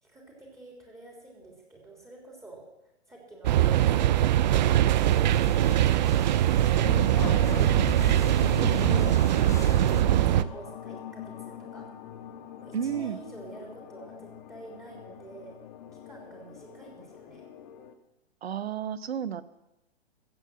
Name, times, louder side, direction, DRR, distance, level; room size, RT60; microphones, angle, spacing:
voice 1, 0.0-2.6 3.1-4.7 10.2-11.8 12.6-15.6 16.0-17.5, right 2 dB, 10° right, -2 dB, 3.4 m, -47 dB
sound 1, 3.4-10.4, right 12 dB, 45° right, 0.5 m, -22 dB
sound 2, 5.0-10.0, left 5 dB, 10° left, 0.7 m, -42 dB
sound 3, 6.8-17.9, left 9 dB, 40° left, 1.2 m, -41 dB
voice 2, 12.7-13.2 18.4-19.4, right 8 dB, 70° right, 15 dB, 1.0 m, -31 dB
15.0 x 8.0 x 7.8 m, 0.92 s
figure-of-eight pair, 120°, 33 cm